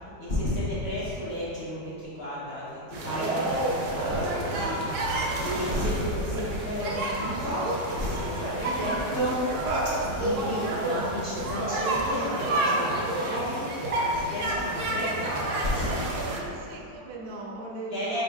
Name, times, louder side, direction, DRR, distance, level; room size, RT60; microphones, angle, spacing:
voice 1, 0.2-9.5 10.0-16.4 17.9-18.2, equal, 75° left, -9 dB, 0.5 m, -32 dB
sound 1, 2.9-16.4, right 1 dB, 75° right, 0.7 m, -29 dB
voice 2, 3.1-3.5 5.1-5.8 16.3-18.2, right 2 dB, 90° right, 0 dB, 1.4 m, -40 dB
4.3 x 4.2 x 2.2 m, 2.7 s
omnidirectional pair, 2.0 m